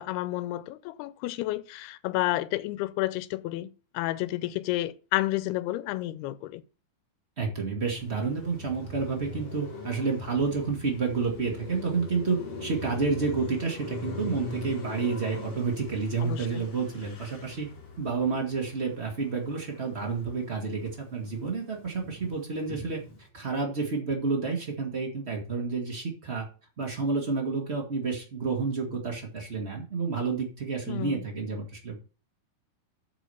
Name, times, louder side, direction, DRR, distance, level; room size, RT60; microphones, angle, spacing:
voice 1, 0.0-6.6 16.2-16.7 30.9-31.3, left 17 dB, 90° left, 2.6 m, -31 dB
voice 2, 7.4-17.7 18.0-23.0 23.3-26.5 26.8-32.0, right 4 dB, 65° right, 0.6 m, -30 dB
Car passing by, 8.0-20.4 20.8-23.3, left 2 dB, 45° left, 3.0 m, -41 dB
8.9 x 4.8 x 6.9 m
omnidirectional pair, 4.5 m